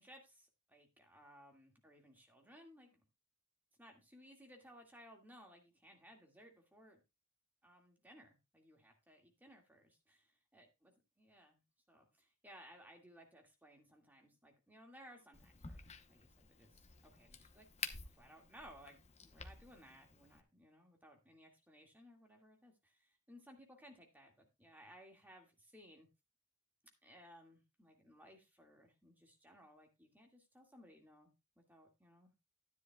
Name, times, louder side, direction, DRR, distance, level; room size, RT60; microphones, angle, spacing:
voice 1, 0.0-3.0 3.8-7.0 7.6-10.2 10.5-11.6 11.9-17.7 18.0-26.1 27.0-32.3, equal, 10° right, 1 dB, 1.9 m, -61 dB
Crack, 15.3-20.4, left 5 dB, 30° left, 0.8 m, -51 dB
13.0 x 10.0 x 2.3 m, 0.23 s
head